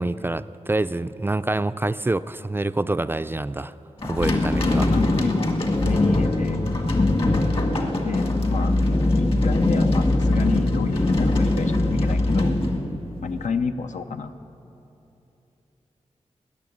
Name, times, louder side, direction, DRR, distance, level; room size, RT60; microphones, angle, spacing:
voice 1, 0.0-3.7 4.0-4.8, right 2 dB, 20° right, 13 dB, 0.3 m, -26 dB
sound 1, 4.0-13.4, left 2 dB, 50° left, 1.6 m, -21 dB
voice 2, 4.7-5.5 5.8-6.7 8.0-8.7 9.2-12.6 13.2-14.3, left 6 dB, 90° left, 8 dB, 0.7 m, -30 dB
19.5 x 6.9 x 9.4 m, 3.0 s
wide cardioid pair, 90°, 12 cm